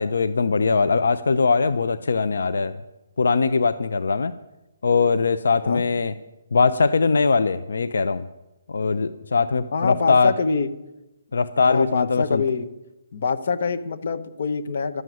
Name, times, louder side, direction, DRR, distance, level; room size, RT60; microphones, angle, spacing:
voice 1, 0.0-2.7 3.2-4.3 4.8-6.1 6.5-8.2 8.7-10.3 11.3-12.4, left 4 dB, 80° left, 13 dB, 0.6 m, -21 dB
voice 2, 9.7-10.7 11.6-12.7 13.1-15.0, left 4 dB, 50° left, 9 dB, 1.0 m, -25 dB
12.5 x 7.7 x 9.3 m, 0.97 s
hypercardioid pair, 170°, 0 cm